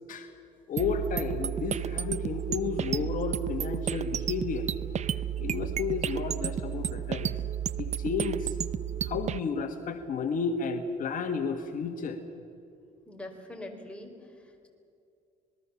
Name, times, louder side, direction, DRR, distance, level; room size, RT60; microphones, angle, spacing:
voice 1, 0.7-4.7 5.4-7.3 7.8-8.6 9.0-12.2, left 5 dB, 50° left, 5 dB, 1.7 m, -32 dB
sound 1, 0.8-9.4, right 9 dB, 40° right, 0.7 m, -32 dB
voice 2, 13.1-14.7, left 1 dB, 5° left, 2 dB, 4.2 m, -44 dB
26.5 x 20.0 x 7.2 m, 2.6 s
cardioid pair, 110°, 17 cm